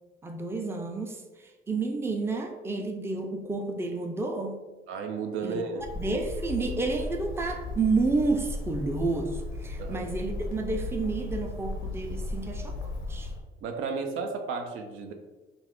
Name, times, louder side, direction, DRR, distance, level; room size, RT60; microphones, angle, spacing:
voice 1, 0.2-4.7 5.4-5.6 6.0-12.8 13.1-13.3, right 3 dB, 10° right, 4 dB, 0.4 m, -30 dB
voice 2, 4.9-5.8 9.8-10.1 13.6-15.1, right 5 dB, 80° right, 4 dB, 0.4 m, -33 dB
Bird, 5.8-13.4, left 2 dB, 85° left, 0.5 m, -36 dB
2.4 x 2.3 x 3.4 m, 1.2 s
cardioid pair, 90°, 20 cm